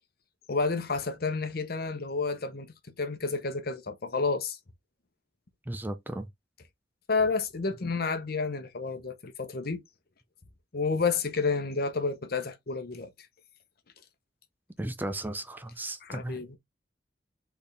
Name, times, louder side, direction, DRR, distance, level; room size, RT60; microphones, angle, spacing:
voice 1, 0.5-4.6 7.1-9.8 10.7-13.1 16.0-16.6, left 4 dB, 60° left, 0.9 m, -30 dB
voice 2, 5.7-6.3 14.8-16.4, right 1 dB, 10° right, 0.5 m, -35 dB
4.4 x 3.5 x 3.3 m
head